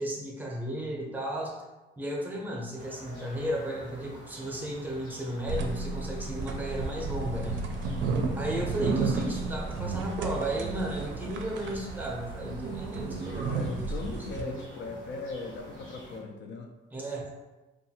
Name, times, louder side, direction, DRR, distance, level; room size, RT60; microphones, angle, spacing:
voice 1, 0.0-1.5 2.0-7.6 8.4-13.9 14.3-14.6 16.9-17.2, right 1 dB, 10° right, -2 dB, 0.6 m, -34 dB
sound 1, 2.8-16.2, equal, 90° left, 1.3 m, -48 dB
sound 2, 5.5-14.4, right 4 dB, 70° right, 0.4 m, -33 dB
voice 2, 7.9-8.5 13.4-16.7, left 3 dB, 65° left, 3 dB, 0.4 m, -39 dB
2.6 x 2.3 x 2.8 m, 1.1 s
cardioid pair, 90°, 20 cm